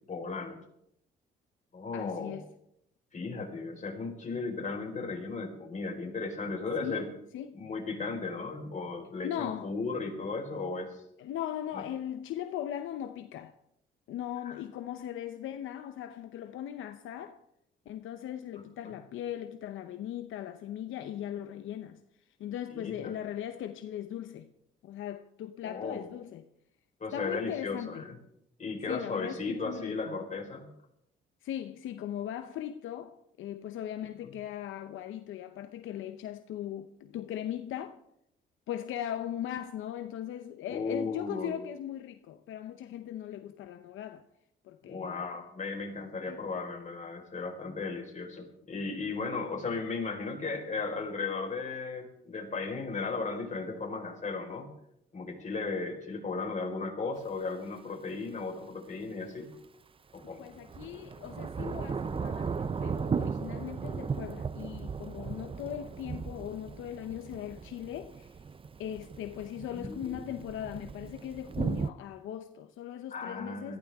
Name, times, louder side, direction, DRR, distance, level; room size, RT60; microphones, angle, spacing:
voice 1, 0.1-0.6 1.7-2.3 3.1-7.1 7.5-11.0 11.7-11.8 14.4-14.5 18.8-18.9 22.7-23.1 25.6-26.0 27.0-28.2 28.6-30.7 40.7-41.5 44.8-54.7 55.1-59.5 60.1-60.4 69.7-70.3 73.1-73.8, left 4 dB, 40° left, 4.7 m, -36 dB
voice 2, 1.9-2.5 6.8-7.1 7.3-7.6 9.2-9.7 11.2-13.5 14.1-17.4 17.9-22.0 22.4-24.5 24.8-26.4 27.1-28.0 28.9-30.2 31.4-38.0 38.7-44.2 44.6-45.2 46.2-46.4 60.4-68.3 68.8-73.8, left 11 dB, 80° left, 0.8 m, -39 dB
Thunder / Rain, 57.2-57.3 60.2-71.9, right 5 dB, 25° right, 0.5 m, -36 dB
21.5 x 15.0 x 3.6 m
cardioid pair, 90°, 20 cm